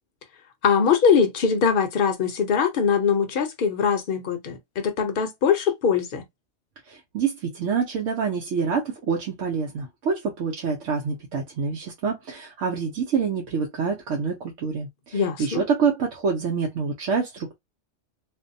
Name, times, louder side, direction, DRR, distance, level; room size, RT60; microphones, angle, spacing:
voice 1, 0.6-6.2 15.1-15.6, left 6 dB, 55° left, 0.7 m, -22 dB
voice 2, 6.9-17.6, right 5 dB, 90° right, 1.0 m, -26 dB
2.6 x 2.1 x 2.6 m
omnidirectional pair, 1.2 m